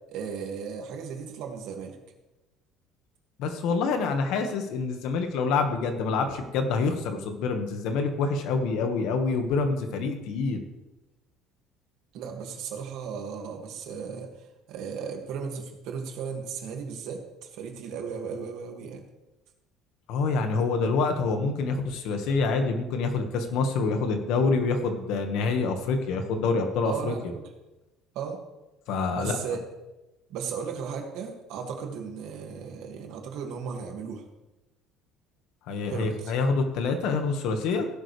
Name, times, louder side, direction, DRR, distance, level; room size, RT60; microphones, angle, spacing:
voice 1, 0.1-2.0 12.1-14.3 14.7-19.0 26.8-27.5 28.1-28.4 29.1-29.6 30.3-34.2 35.9-36.3, right 6 dB, 60° right, 2 dB, 2.3 m, -35 dB
voice 2, 3.4-10.6 20.1-27.1 28.9-29.4 35.7-37.9, left 4 dB, 60° left, 5 dB, 1.7 m, -26 dB
16.5 x 11.5 x 3.4 m, 1.0 s
cardioid pair, 170°, 0 cm